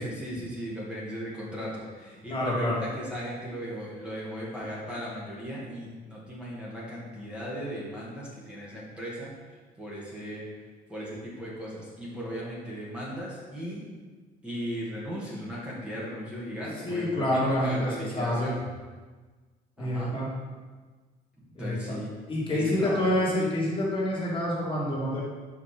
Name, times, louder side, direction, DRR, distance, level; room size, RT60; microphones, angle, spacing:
voice 1, 0.0-9.4 9.8-10.5 10.9-13.8 14.4-18.6 19.8-20.1 21.6-22.1 22.5-23.1, equal, 5° right, -7 dB, 1.9 m, -37 dB
voice 2, 2.3-2.8 16.9-18.5 19.8-20.3 21.6-22.0 22.3-25.2, left 1 dB, 30° left, -6 dB, 2.2 m, -27 dB
5.3 x 5.2 x 5.0 m, 1.4 s
cardioid pair, 110°, 17 cm